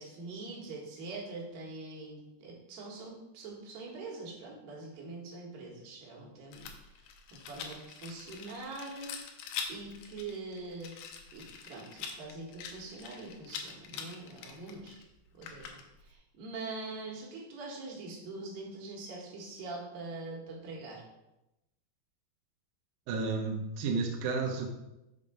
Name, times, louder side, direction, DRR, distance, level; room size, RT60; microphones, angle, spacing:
voice 1, 0.0-6.7 7.3-9.1 9.7-10.9 11.3-15.0 15.4-15.8 16.1-21.0, right 3 dB, 60° right, -2 dB, 2.9 m, -43 dB
Rattle, 6.5-16.1, left 6 dB, 85° left, 2.1 m, -44 dB
voice 2, 23.1-24.7, right 4 dB, 80° right, 2 dB, 2.1 m, -32 dB
6.5 x 5.4 x 5.0 m, 0.93 s
omnidirectional pair, 5.1 m